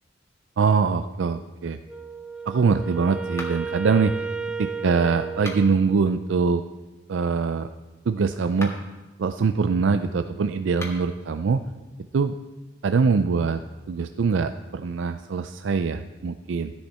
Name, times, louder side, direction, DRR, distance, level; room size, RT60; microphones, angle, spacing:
voice 1, 0.6-1.8 2.5-4.1 4.6-6.6 7.1-7.7 8.1-8.8 9.2-11.6 12.1-12.3 12.8-13.6 13.9-16.7, right 5 dB, 75° right, 9 dB, 0.4 m, -23 dB
Wind instrument woodwind instrument, 1.9-6.2, right 5 dB, 5° right, 0.5 m, -33 dB
sound 1, 3.3-3.8 5.3-5.9 8.5-9.0 10.7-11.2, left 1 dB, 15° left, 1.6 m, -39 dB
14.5 x 10.5 x 4.3 m, 1.2 s
head